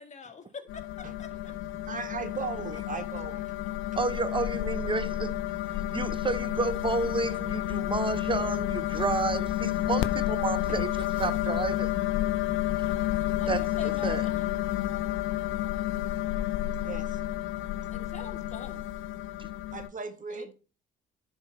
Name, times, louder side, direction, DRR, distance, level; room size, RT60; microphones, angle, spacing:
voice 1, 0.0-1.3 5.1-5.2 13.4-14.6 17.9-18.9 20.3-20.5, left 5 dB, 35° left, 1.8 m, -44 dB
sound 1, 0.7-19.9, left 13 dB, 80° left, 0.6 m, -30 dB
voice 2, 1.0-3.5 10.7-10.8 16.8-17.2 19.7-20.5, right 5 dB, 40° right, 1.6 m, -38 dB
voice 3, 4.0-5.4 5.9-10.9 11.2-11.9 13.5-14.2, right 3 dB, 25° right, 0.8 m, -30 dB
10.5 x 4.4 x 5.6 m
cardioid pair, 90°, 20 cm